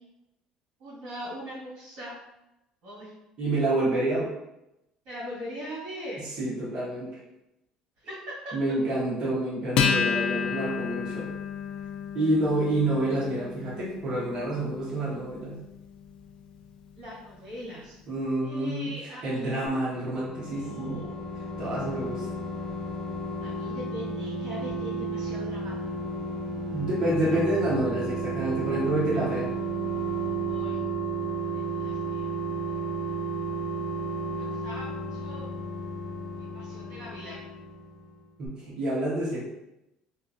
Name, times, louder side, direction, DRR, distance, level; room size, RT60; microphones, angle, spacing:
voice 1, 0.8-2.1 2.8-3.1 5.0-6.2 8.0-8.6 17.0-18.0 18.4-19.7 20.5-21.2 23.4-25.7 30.5-30.8 31.5-32.3 32.7-33.1 34.4-35.5 36.4-37.4, equal, 60° right, -8 dB, 1.4 m, -41 dB
voice 2, 3.4-4.3 6.2-7.2 8.5-11.3 12.1-15.6 18.1-21.0 21.4-22.3 26.6-29.5 38.4-39.4, right 1 dB, 40° right, -7 dB, 1.0 m, -28 dB
Acoustic guitar, 9.8-16.6, left 6 dB, 55° left, 0.4 m, -31 dB
sound 1, 19.9-38.2 38.5-38.6, right 3 dB, 25° left, 0.7 m, -33 dB
2.8 x 2.4 x 2.5 m, 0.91 s
cardioid pair, 130°, 2 cm